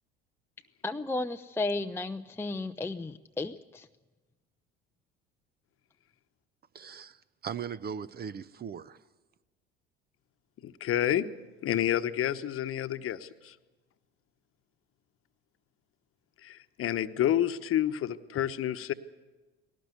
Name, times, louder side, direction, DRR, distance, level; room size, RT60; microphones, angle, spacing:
voice 1, 0.8-3.9, left 2 dB, 10° left, 0.5 m, -34 dB
voice 2, 6.7-9.0, right 7 dB, 30° right, 0.7 m, -39 dB
voice 3, 10.6-11.2 11.6-13.5 16.4-18.9, left 11 dB, 45° left, 1.1 m, -29 dB
19.5 x 17.5 x 8.2 m
hypercardioid pair, 65°, 30 cm